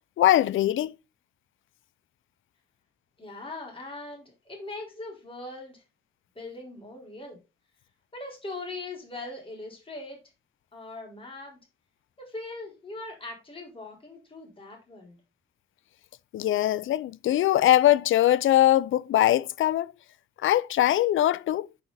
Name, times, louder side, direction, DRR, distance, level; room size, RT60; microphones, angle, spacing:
voice 1, 0.2-0.9 16.3-19.9 20.4-21.7, left 13 dB, 85° left, 0.5 m, -22 dB
voice 2, 3.2-5.8 6.3-7.4 8.1-10.2 10.7-11.6 12.2-15.2, left 2 dB, 25° left, 4.3 m, -40 dB
9.2 x 5.3 x 4.0 m
cardioid pair, 115°, 20 cm